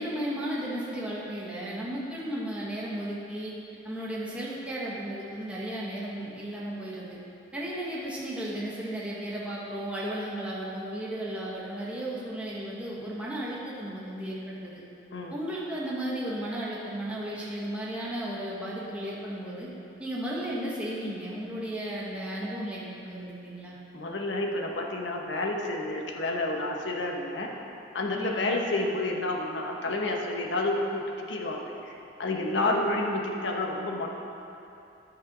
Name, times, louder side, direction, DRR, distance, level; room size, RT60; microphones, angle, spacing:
voice 1, 0.0-3.5 3.8-7.2 7.5-14.8 15.3-19.7 20.0-23.8 28.1-28.5 32.6-32.9, right 1 dB, 5° right, -7 dB, 1.3 m, -34 dB
voice 2, 23.9-27.5 27.9-31.0 31.3-31.9 32.2-34.1, left 2 dB, 75° left, 0 dB, 1.0 m, -29 dB
9.9 x 5.9 x 6.1 m, 2.8 s
head